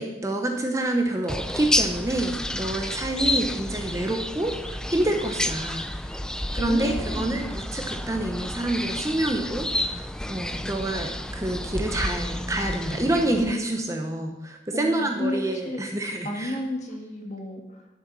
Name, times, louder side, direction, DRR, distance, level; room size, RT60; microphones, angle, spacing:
voice 1, 0.0-6.1 6.5-16.6, right 1 dB, 15° right, 3 dB, 1.0 m, -27 dB
sound 1, 1.3-13.5, left 1 dB, 5° left, 0.4 m, -30 dB
voice 2, 6.5-7.4 14.7-15.8 16.2-17.9, left 1 dB, 40° left, 3 dB, 1.7 m, -32 dB
12.5 x 8.1 x 6.1 m, 1.0 s
head